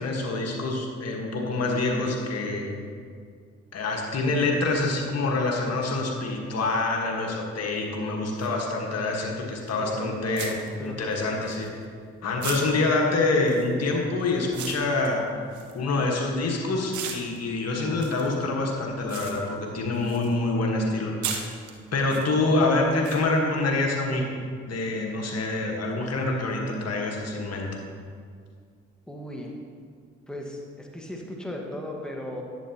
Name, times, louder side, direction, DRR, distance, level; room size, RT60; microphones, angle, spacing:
voice 1, 0.0-2.7 3.7-10.5 10.8-11.7 12.2-15.3 15.7-21.4 21.9-24.2 24.7-27.7, left 2 dB, 55° left, 0 dB, 1.5 m, -26 dB
sound 1, 8.4-8.5 9.7-9.8 10.3-12.0 12.4-16.5 16.9-20.4 20.6-22.2 23.0-23.2, right 7 dB, 70° right, 1.0 m, -38 dB
voice 2, 9.8-10.2 10.8-11.1 29.1-29.6 30.3-32.4, left 1 dB, 5° left, -1 dB, 1.4 m, -37 dB
10.5 x 8.1 x 2.9 m, 2.1 s
hypercardioid pair, 55°, 30 cm